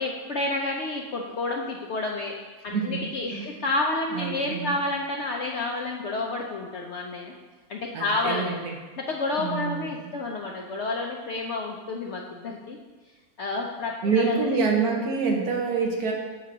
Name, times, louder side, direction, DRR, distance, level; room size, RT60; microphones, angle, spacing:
voice 1, 0.0-2.3 2.6-7.3 7.7-8.5 9.0-12.8 13.4-14.6, left 2 dB, 70° left, 0 dB, 0.6 m, -30 dB
voice 2, 4.1-4.8 7.9-8.7 9.4-9.9 14.0-16.1, right 4 dB, 75° right, 0 dB, 1.4 m, -26 dB
7.5 x 2.8 x 6.0 m, 1.3 s
omnidirectional pair, 1.7 m